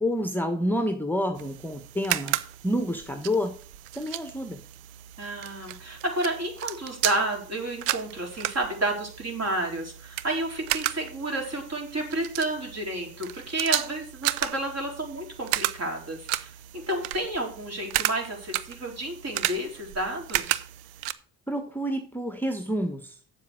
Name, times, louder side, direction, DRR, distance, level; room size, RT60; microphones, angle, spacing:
voice 1, 0.0-2.4 2.6-3.5 3.9-4.6 21.5-23.2, equal, 5° left, 7 dB, 1.3 m, -28 dB
sound 1, 1.3-21.1, right 16 dB, 80° right, 0.7 m, -34 dB
voice 2, 5.2-20.6, right 1 dB, 35° right, 2 dB, 4.3 m, -31 dB
7.7 x 7.4 x 6.4 m, 0.44 s
hypercardioid pair, 55°, 44 cm